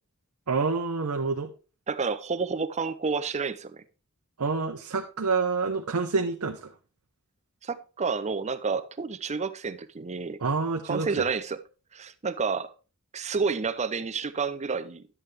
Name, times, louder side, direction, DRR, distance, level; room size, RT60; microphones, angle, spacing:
voice 1, 0.5-1.5 4.4-6.7 10.4-11.2, right 4 dB, 80° right, 4 dB, 0.8 m, -27 dB
voice 2, 1.9-3.8 7.6-10.4 10.8-11.6 11.9-12.7 13.1-15.1, right 5 dB, 30° right, 13 dB, 0.6 m, -30 dB
11.0 x 7.8 x 3.3 m, 0.34 s
head